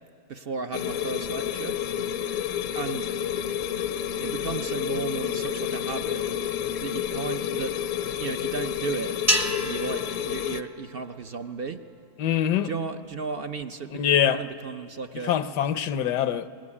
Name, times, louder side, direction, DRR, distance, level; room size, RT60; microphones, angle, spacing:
voice 1, 0.3-1.8 2.7-3.1 4.2-6.2 6.8-7.7 8.2-9.2 9.6-11.8 12.6-15.3, right 4 dB, 55° right, 0.6 m, -34 dB
sound 1, 0.7-10.6, left 9 dB, 60° left, 0.9 m, -30 dB
sound 2, 9.3-11.7, equal, 15° right, 0.7 m, -30 dB
voice 2, 12.2-12.7 13.9-14.4 15.1-16.5, left 10 dB, 75° left, 1.3 m, -24 dB
24.0 x 20.0 x 9.8 m
omnidirectional pair, 1.8 m